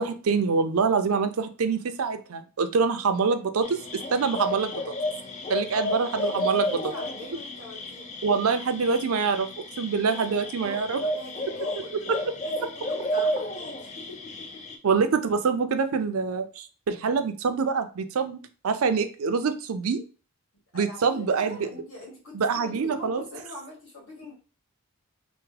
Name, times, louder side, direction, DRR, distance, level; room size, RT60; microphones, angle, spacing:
voice 1, 0.0-4.8 5.5-6.8 8.2-9.5 9.8-11.0 12.1-12.2 14.8-18.4 18.6-20.0 20.7-21.7 22.3-23.3, right 5 dB, 75° right, 9 dB, 0.4 m, -25 dB
sound 1, 3.6-14.8, equal, 30° left, 0.4 m, -32 dB
voice 2, 5.7-8.1 10.0-14.8 20.7-24.3, left 2 dB, 65° left, -3 dB, 1.8 m, -43 dB
3.4 x 2.1 x 3.2 m, 0.35 s
head